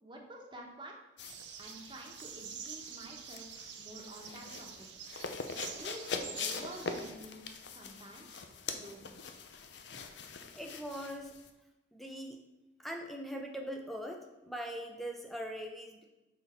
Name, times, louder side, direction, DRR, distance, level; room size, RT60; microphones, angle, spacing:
voice 1, 0.0-0.9 1.6-4.9 5.5-7.5 7.7-8.4 8.7-9.1, right 1 dB, 25° right, 1 dB, 1.1 m, -49 dB
sound 1, 1.2-11.5, left 5 dB, 70° left, 0.6 m, -43 dB
sound 2, 1.2-7.1, right 7 dB, 70° right, 0.7 m, -47 dB
voice 2, 10.5-11.4 11.9-12.4 12.8-16.1, equal, ahead, 2 dB, 0.7 m, -41 dB
6.2 x 5.4 x 4.4 m, 1.0 s
head